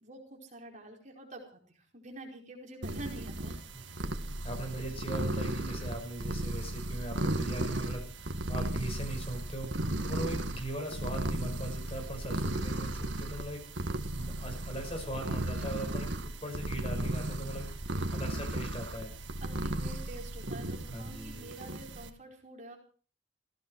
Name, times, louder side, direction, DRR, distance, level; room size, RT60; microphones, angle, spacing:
voice 1, 0.0-3.7 19.4-22.8, right 1 dB, 40° right, 1 dB, 4.8 m, -47 dB
sound 1, 2.8-22.1, right 1 dB, 65° right, 1.9 m, -35 dB
voice 2, 4.4-13.6 14.1-19.1 20.9-21.5, right 1 dB, 30° left, 3 dB, 6.0 m, -40 dB
18.5 x 16.0 x 4.8 m, 0.40 s
head